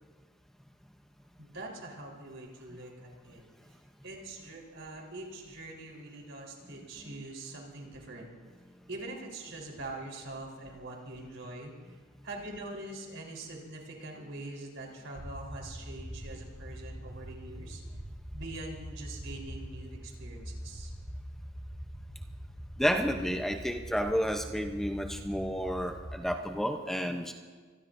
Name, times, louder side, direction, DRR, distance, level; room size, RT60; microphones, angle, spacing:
voice 1, 1.4-3.4 4.0-8.3 8.9-12.0 12.2-17.8 18.3-20.9, right 2 dB, 75° right, -1 dB, 4.0 m, -43 dB
sound 1, 15.2-26.3, equal, 15° right, 5.6 m, -43 dB
voice 2, 22.8-27.3, equal, ahead, 4 dB, 0.7 m, -31 dB
26.0 x 20.0 x 2.6 m, 1.5 s
head